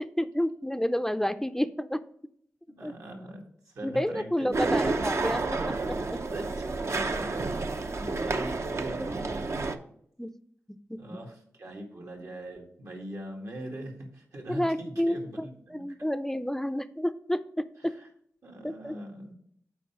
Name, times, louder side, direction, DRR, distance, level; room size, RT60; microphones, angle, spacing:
voice 1, 0.0-2.0 2.8-2.9 3.8-6.2 9.0-9.1 10.2-10.3 10.9-11.2 14.5-17.9 18.6-18.9, equal, 5° left, 12 dB, 0.4 m, -30 dB
voice 2, 2.7-4.8 6.3-9.8 11.0-15.8 17.9-18.1 18.4-19.4, right 1 dB, 75° right, 0 dB, 2.0 m, -41 dB
sound 1, 4.5-9.8, right 3 dB, 55° right, 0.7 m, -30 dB
6.9 x 4.5 x 6.0 m, 0.66 s
cardioid pair, 55°, 5 cm